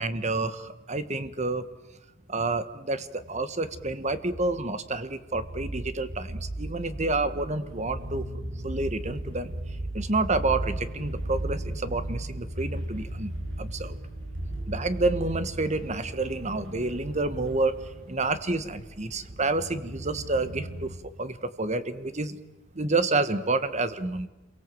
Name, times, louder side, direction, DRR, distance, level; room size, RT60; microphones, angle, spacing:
voice 1, 0.0-1.7 2.3-8.3 8.6-9.5 9.9-13.3 13.6-14.0 14.7-17.8 18.1-22.4 22.7-24.3, right 2 dB, 35° right, 12 dB, 1.4 m, -29 dB
sound 1, 3.6-21.0, right 1 dB, 75° right, 7.4 m, -36 dB
28.0 x 23.0 x 7.8 m, 1.0 s
head